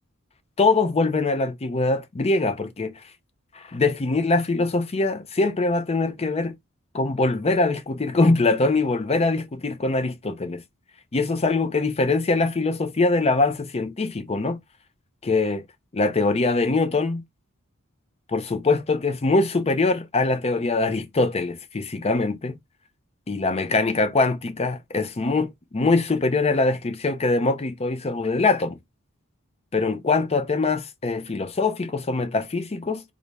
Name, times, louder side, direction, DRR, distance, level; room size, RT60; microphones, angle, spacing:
voice 1, 0.6-3.0 3.5-6.5 6.9-10.6 11.1-14.6 15.2-15.6 15.9-17.2 18.3-22.6 23.3-28.8 29.7-33.0, left 3 dB, 30° left, 0.5 m, -23 dB
3.9 x 2.2 x 3.1 m
head